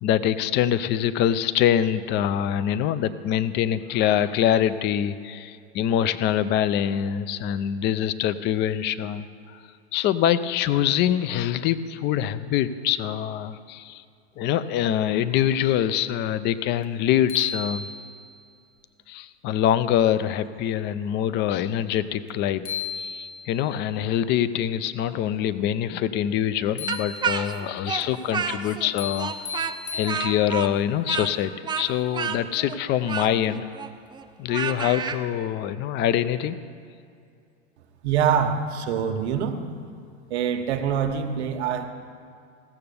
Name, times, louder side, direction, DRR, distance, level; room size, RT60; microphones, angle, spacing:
voice 1, 0.0-9.3 9.5-9.6 9.9-14.0 14.4-17.9 19.1-22.7 22.9-33.7 34.4-36.6, left 10 dB, 35° left, 14 dB, 0.5 m, -24 dB
sound 1, 16.8-16.9 17.3-18.4 22.3-22.4 22.7-23.7 26.8-27.7 29.0-30.7, left 7 dB, 85° left, 1.3 m, -34 dB
Speech, 26.9-28.9 29.2-35.2, right 7 dB, 15° right, 0.5 m, -30 dB
voice 2, 38.0-39.6 40.3-41.8, right 7 dB, 75° right, 6 dB, 1.3 m, -24 dB
16.0 x 6.7 x 6.9 m, 2.3 s
hypercardioid pair, 120°, 33 cm